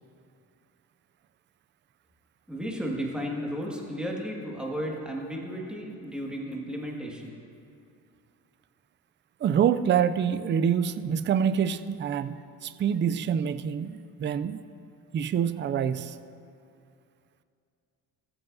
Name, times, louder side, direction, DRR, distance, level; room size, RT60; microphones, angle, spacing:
voice 1, 2.5-7.3, equal, ahead, -2 dB, 1.9 m, -34 dB
voice 2, 9.4-14.6 15.1-16.2, right 8 dB, 30° right, 13 dB, 0.4 m, -26 dB
19.0 x 7.7 x 2.7 m, 2.5 s
cardioid pair, 85°, 40 cm